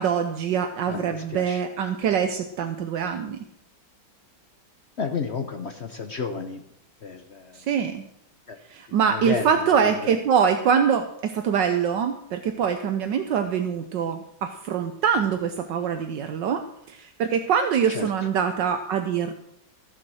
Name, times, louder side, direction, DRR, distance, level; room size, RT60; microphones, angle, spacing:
voice 1, 0.0-3.4 7.5-8.0 8.7-19.3, right 7 dB, 70° right, 7 dB, 1.4 m, -24 dB
voice 2, 0.9-1.6 5.0-6.6 7.0-7.6 8.5-8.6 9.1-10.1 17.9-18.1, left 5 dB, 50° left, 7 dB, 0.8 m, -32 dB
14.5 x 7.5 x 6.2 m, 0.74 s
omnidirectional pair, 2.1 m